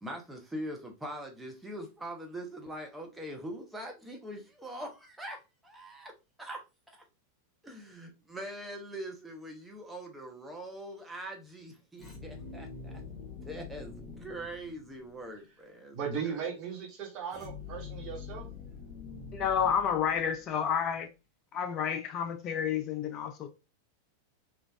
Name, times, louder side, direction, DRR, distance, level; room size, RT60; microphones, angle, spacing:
voice 1, 0.0-6.1 6.4-6.6 6.9-7.0 7.6-12.9 13.4-16.0 16.2-16.5, right 1 dB, 5° right, 0.7 m, -42 dB
sound 1, 12.0-15.3 17.3-20.6, left 5 dB, 15° left, 0.9 m, -45 dB
voice 2, 15.9-18.5, right 7 dB, 40° right, 1.2 m, -37 dB
voice 3, 19.3-21.1 21.5-23.5, left 8 dB, 35° left, 0.4 m, -30 dB
3.2 x 2.4 x 2.2 m
figure-of-eight pair, 90°, 0 cm